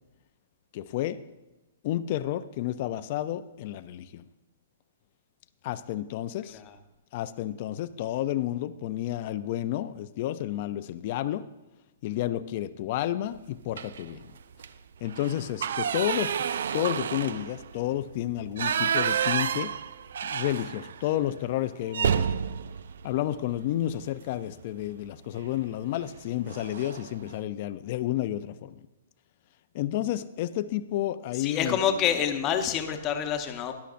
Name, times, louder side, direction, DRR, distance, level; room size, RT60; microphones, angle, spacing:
voice 1, 0.7-1.2 1.8-4.2 5.6-6.6 7.1-11.5 12.0-14.3 15.0-16.5 16.7-19.7 20.2-22.4 23.0-28.8 29.7-31.8, left 13 dB, 45° left, 11 dB, 0.4 m, -31 dB
sound 1, 13.7-14.1 14.5-14.7 15.0-21.1 21.4-21.5 21.9-24.0 25.4-25.7 26.0-26.2 26.5-27.1, right 7 dB, 75° right, 0.3 m, -30 dB
voice 2, 31.4-33.7, left 9 dB, 25° left, 6 dB, 0.9 m, -27 dB
13.0 x 10.5 x 2.5 m, 1.0 s
hypercardioid pair, 150°, 0 cm